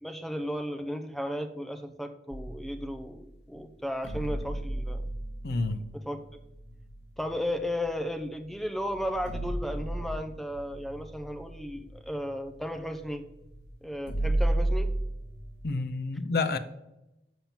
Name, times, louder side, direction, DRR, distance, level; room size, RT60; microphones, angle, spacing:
voice 1, 0.0-5.0 6.1-6.2 7.2-13.2 13.8-14.9, equal, ahead, 6 dB, 0.6 m, -34 dB
sound 1, 2.3-3.2 4.0-8.0 8.5-8.6 8.9-15.8, right 1 dB, 75° left, 1.1 m, -34 dB
voice 2, 5.4-5.8 15.6-16.6, left 3 dB, 60° left, 10 dB, 0.5 m, -29 dB
7.2 x 5.7 x 7.2 m, 0.91 s
head